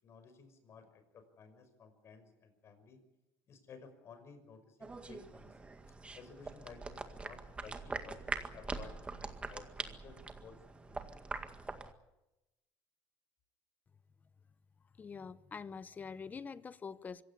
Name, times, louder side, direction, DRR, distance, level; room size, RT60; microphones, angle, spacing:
voice 1, 0.0-3.0 3.5-5.6 6.1-11.1, left 5 dB, 45° left, 5.7 m, -55 dB
sound 1, 4.8-11.9, right 3 dB, 20° right, 2.0 m, -43 dB
voice 2, 15.0-17.2, left 5 dB, 25° left, 1.0 m, -45 dB
25.0 x 16.5 x 9.7 m
cardioid pair, 120°, 6 cm